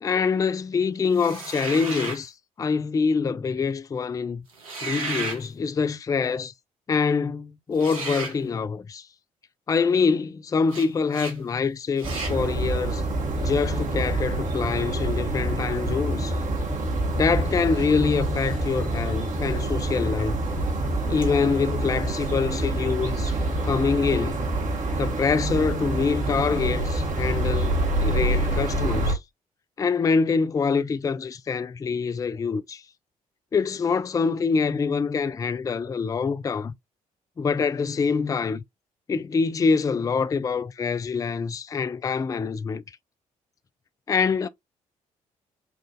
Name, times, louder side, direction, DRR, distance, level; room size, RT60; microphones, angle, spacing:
voice 1, 0.0-4.4 4.8-6.5 6.9-9.1 9.7-13.0 13.4-16.4 17.1-20.4 21.1-23.3 23.6-24.5 25.0-29.2 29.8-32.8 33.5-36.7 37.4-38.6 39.1-42.8 44.1-44.5, left 5 dB, 20° left, 0.3 m, -25 dB
sound 1, 1.2-2.2 4.5-5.4 7.8-8.4 10.7-10.9 11.1-11.4 12.0-12.4, right 3 dB, 85° right, 0.8 m, -33 dB
sound 2, 12.0-29.1, right 2 dB, 45° right, 1.4 m, -26 dB
5.7 x 2.5 x 2.4 m
figure-of-eight pair, 45°, 18 cm